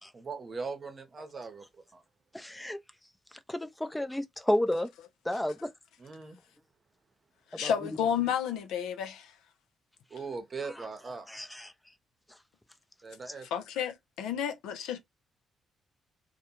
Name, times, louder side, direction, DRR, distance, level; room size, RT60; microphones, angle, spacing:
voice 1, 0.1-2.0 6.0-6.4 10.1-11.5 13.0-13.5, right 4 dB, 45° right, 0.8 m, -40 dB
voice 2, 2.3-2.8 3.5-4.9 5.2-5.7 7.6-7.7 11.3-11.7, left 1 dB, 10° left, 0.5 m, -31 dB
voice 3, 7.5-9.3 13.5-15.0, left 8 dB, 80° left, 0.4 m, -31 dB
2.3 x 2.2 x 2.9 m
hypercardioid pair, 50°, 0 cm